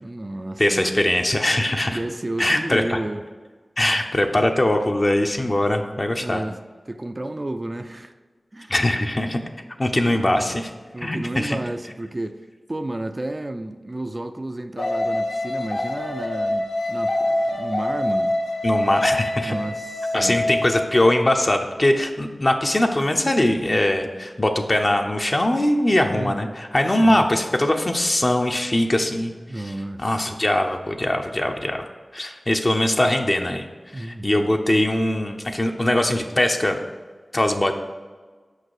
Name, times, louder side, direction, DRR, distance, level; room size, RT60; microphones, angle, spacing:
voice 1, 0.0-1.1 1.9-3.2 6.2-6.6 6.9-8.1 8.5-8.7 10.0-10.4 10.9-12.4 12.7-18.4 19.4-20.4 26.1-26.5 27.0-27.3 29.5-30.2 33.9-34.5, right 1 dB, 35° right, 8 dB, 0.4 m, -32 dB
voice 2, 0.6-2.0 2.4-3.0 3.8-6.4 8.7-9.4 9.8-10.7 11.0-11.6 18.6-19.6 20.1-29.3 30.0-33.7 33.9-36.8 37.3-37.7, left 1 dB, 40° left, 3 dB, 0.7 m, -21 dB
sound 1, 14.8-21.1, left 1 dB, 85° left, 0.8 m, -25 dB
6.6 x 5.2 x 4.8 m, 1.4 s
wide cardioid pair, 50°, 0 cm